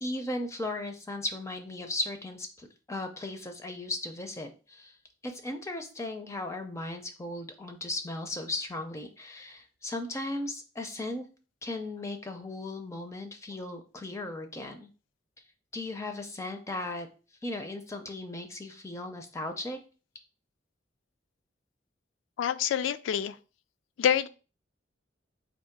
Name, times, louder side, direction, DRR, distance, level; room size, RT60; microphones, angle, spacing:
voice 1, 0.0-5.0 5.2-11.2 11.6-14.9 15.7-17.1 17.4-19.8, left 2 dB, 15° left, 0.4 m, -36 dB
voice 2, 22.4-23.3 24.0-24.3, left 9 dB, 85° left, 0.3 m, -26 dB
3.6 x 2.7 x 4.5 m
head